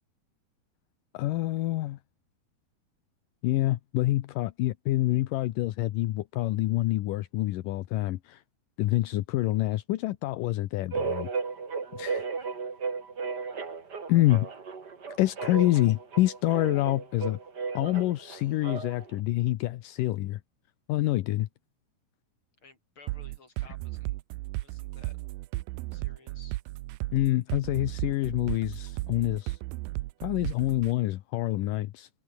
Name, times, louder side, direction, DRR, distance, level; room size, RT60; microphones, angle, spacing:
voice 1, 1.1-2.0 3.4-8.4 8.8-11.3 11.9-12.3 14.1-14.5 15.2-17.4 17.7-20.4 20.9-21.5 27.1-29.6 30.2-32.1, left 16 dB, 75° left, 2.2 m, -27 dB
sound 1, 10.9-19.1, right 5 dB, 30° right, 2.6 m, -35 dB
voice 2, 22.6-24.1 24.6-25.2 25.9-26.6, left 4 dB, 30° left, 6.0 m, -55 dB
sound 2, 23.1-30.9, right 20 dB, 80° right, 2.1 m, -35 dB
omnidirectional pair, 4.5 m